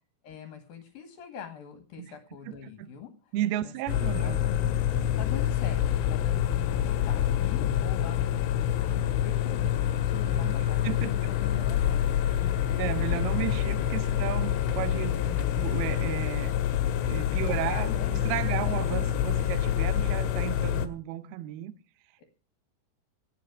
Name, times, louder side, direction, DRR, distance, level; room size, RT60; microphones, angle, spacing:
voice 1, 0.2-3.3 3.6-3.7 4.0-4.6 5.2-12.1 12.4-12.6 13.0-13.6 15.1-15.7 17.4-18.1 18.5-19.3 22.2-22.3, left 8 dB, 60° left, 3.0 m, -43 dB
voice 2, 2.5-2.9 3.3-4.4 10.4-11.1 12.8-15.2 15.6-16.6 17.0-21.7, right 13 dB, 80° right, 2.3 m, -34 dB
sound 1, 3.9-20.9, left 10 dB, 85° left, 3.5 m, -27 dB
18.0 x 8.5 x 6.1 m
omnidirectional pair, 5.6 m